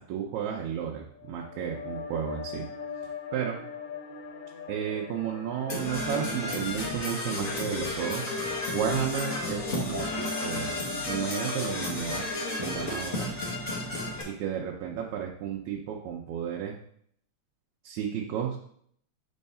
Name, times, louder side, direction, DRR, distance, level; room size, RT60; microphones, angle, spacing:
voice 1, 0.0-2.7 3.3-3.6 4.7-8.2 8.7-10.8 11.1-12.3 12.6-13.3 14.3-16.7 17.8-18.6, right 8 dB, 80° right, 0 dB, 2.1 m, -32 dB
sound 1, 1.1-14.5, left 7 dB, 80° left, 2.0 m, -41 dB
Percussion / Brass instrument, 5.7-14.2, left 1 dB, 40° left, 1.3 m, -33 dB
5.5 x 4.5 x 5.4 m, 0.66 s
omnidirectional pair, 3.3 m